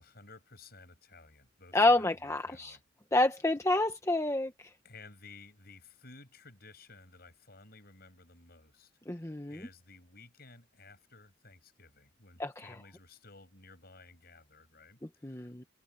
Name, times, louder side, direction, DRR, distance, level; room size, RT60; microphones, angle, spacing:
voice 1, 0.0-2.8 4.8-15.7, left 3 dB, 55° left, 7.4 m, -55 dB
voice 2, 1.7-2.8 3.1-4.7 9.1-9.6 12.4-12.5 15.2-15.6, left 2 dB, 15° left, 1.0 m, -28 dB
head